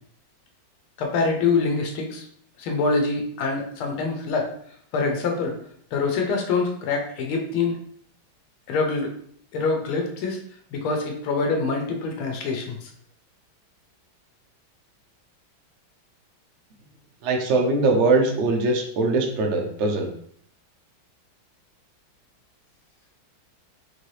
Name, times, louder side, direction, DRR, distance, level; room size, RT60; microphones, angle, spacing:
voice 1, 1.0-2.2 2.6-4.5 4.9-5.5 5.9-7.8 8.7-9.1 9.5-10.4 10.7-12.9, left 4 dB, 90° left, 2 dB, 1.7 m, -25 dB
voice 2, 17.2-20.1, right 3 dB, 70° right, 2 dB, 0.6 m, -21 dB
4.5 x 2.7 x 3.2 m, 0.63 s
omnidirectional pair, 2.2 m